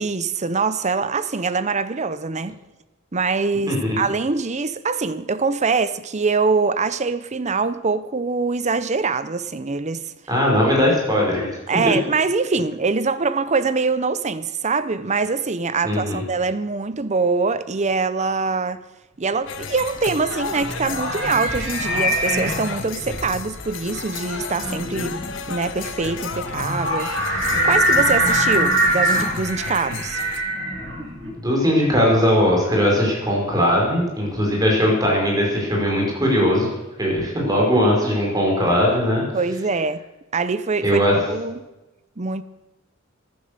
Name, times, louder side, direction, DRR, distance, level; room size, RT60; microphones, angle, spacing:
voice 1, 0.0-2.6 3.1-10.1 11.7-18.8 19.2-30.2 39.3-40.0 40.3-41.0 41.3-41.6 42.2-42.4, right 4 dB, 35° right, 0.7 m, -24 dB
voice 2, 10.3-11.5 11.9-12.0 15.8-16.2 31.4-36.7 37.0-39.2 40.8-41.2, equal, 20° right, 5.4 m, -19 dB
sound 1, 19.5-30.4, left 5 dB, 70° left, 1.1 m, -33 dB
sound 2, 19.8-31.3, right 1 dB, 65° right, 6.6 m, -23 dB
15.0 x 11.5 x 6.8 m
head